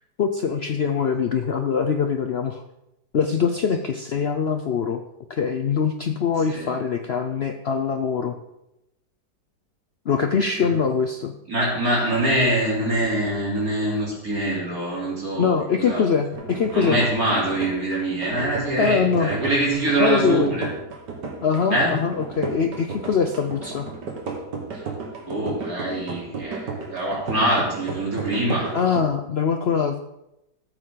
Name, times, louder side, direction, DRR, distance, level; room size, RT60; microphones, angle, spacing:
voice 1, 0.2-2.6 3.1-5.0 5.3-8.4 10.1-11.3 15.4-17.0 18.8-19.3 20.0-20.7 21.4-23.9 28.7-30.0, left 6 dB, 75° left, 5 dB, 0.5 m, -23 dB
voice 2, 11.5-16.1 16.7-20.7 21.7-21.9 24.7-24.9 25.2-28.8, right 1 dB, 50° right, -5 dB, 4.0 m, -24 dB
sound 1, 16.3-29.0, right 4 dB, 75° right, 2.2 m, -34 dB
14.0 x 8.0 x 3.9 m, 0.87 s
omnidirectional pair, 1.9 m